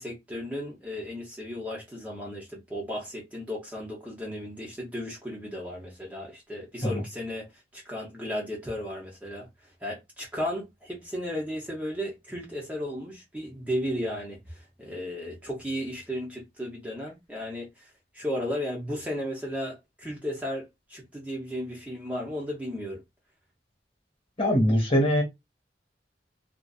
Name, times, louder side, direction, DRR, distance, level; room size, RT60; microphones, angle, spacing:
voice 1, 0.0-9.5 9.8-23.0, equal, 10° right, 0.6 m, -35 dB
voice 2, 24.4-25.2, equal, 30° left, 1.1 m, -22 dB
2.6 x 2.4 x 2.3 m
head